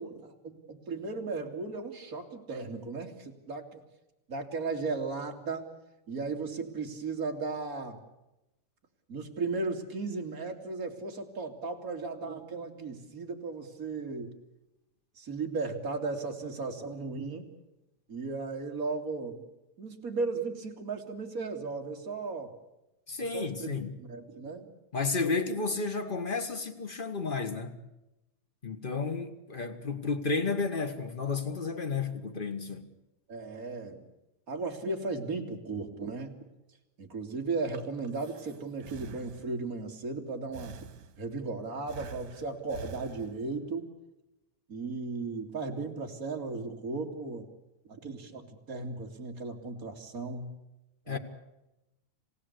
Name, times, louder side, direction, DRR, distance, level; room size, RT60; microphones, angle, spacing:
voice 1, 0.0-3.8 4.3-5.7 6.1-8.0 9.1-14.3 15.2-17.5 18.1-19.4 19.8-22.5 23.2-24.7 33.3-34.0 34.5-36.3 37.0-40.8 41.2-43.9 44.7-47.5 47.9-50.6 51.1-51.2, right 3 dB, 25° right, 2.8 m, -36 dB
voice 2, 23.1-23.9 24.9-27.8 28.6-32.9 51.1-51.2, left 4 dB, 60° left, 0.5 m, -32 dB
Breathing, 37.5-39.8 40.5-41.4 41.9-43.7, right 5 dB, 75° right, 3.3 m, -48 dB
28.0 x 16.5 x 8.3 m
omnidirectional pair, 3.7 m